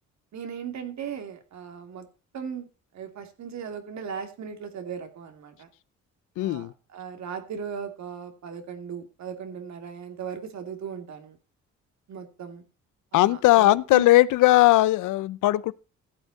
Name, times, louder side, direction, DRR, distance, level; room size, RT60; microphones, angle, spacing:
voice 1, 0.3-2.1 2.3-2.7 2.9-5.7 6.4-11.4 12.1-12.6 13.1-14.1, right 7 dB, 65° right, 2.7 m, -37 dB
voice 2, 6.4-6.7 13.1-15.7, left 17 dB, 85° left, 0.7 m, -19 dB
15.0 x 8.2 x 4.1 m
cardioid pair, 90°, 30 cm